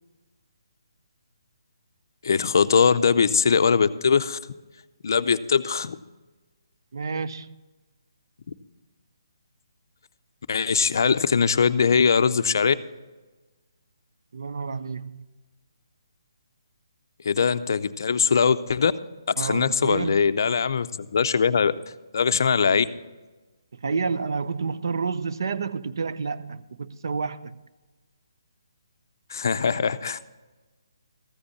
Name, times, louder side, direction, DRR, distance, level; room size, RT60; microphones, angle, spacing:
voice 1, 2.2-4.4 5.0-6.0 10.5-12.8 17.2-18.9 19.3-21.8 22.1-22.9 29.3-30.2, left 6 dB, 50° left, 0.5 m, -21 dB
voice 2, 6.9-7.5 14.3-15.2 19.4-20.1 23.8-27.5, right 5 dB, 55° right, 0.5 m, -29 dB
14.5 x 5.2 x 8.3 m
hypercardioid pair, 170°, 3 cm